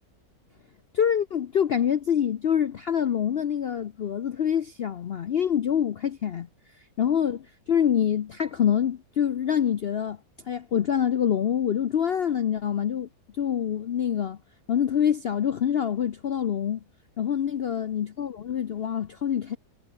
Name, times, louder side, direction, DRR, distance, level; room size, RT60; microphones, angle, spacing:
voice 1, 0.9-6.5 6.7-10.2 10.4-13.1 13.4-14.4 14.7-16.8 17.2-19.6, left 9 dB, 70° left, 0.5 m, -26 dB
omnidirectional pair, 1.8 m